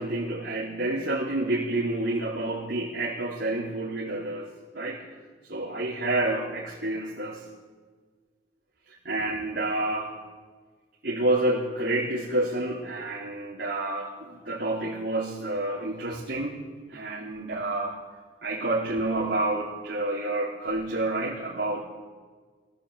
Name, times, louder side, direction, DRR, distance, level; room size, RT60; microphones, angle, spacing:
voice 1, 0.0-4.5 4.7-5.0 5.5-7.4 8.9-10.1 11.0-16.6 16.9-17.9 18.4-21.9, right 2 dB, 65° right, -6 dB, 3.7 m, -29 dB
24.0 x 16.5 x 8.3 m, 1.5 s
head